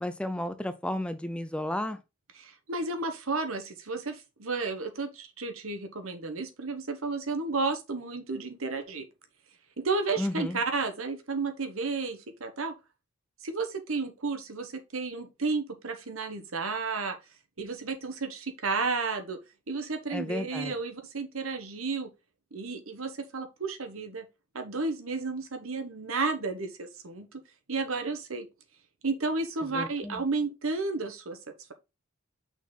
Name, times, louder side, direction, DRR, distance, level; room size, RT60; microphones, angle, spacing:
voice 1, 0.0-2.0 10.2-10.6 20.1-20.7 29.7-30.2, left 1 dB, 5° left, 0.4 m, -33 dB
voice 2, 2.4-9.0 9.8-12.7 13.4-17.2 17.6-19.4 19.7-22.1 22.5-24.3 24.5-27.3 27.7-28.5 29.0-31.4, right 3 dB, 80° right, 1.3 m, -32 dB
6.1 x 4.0 x 4.0 m
head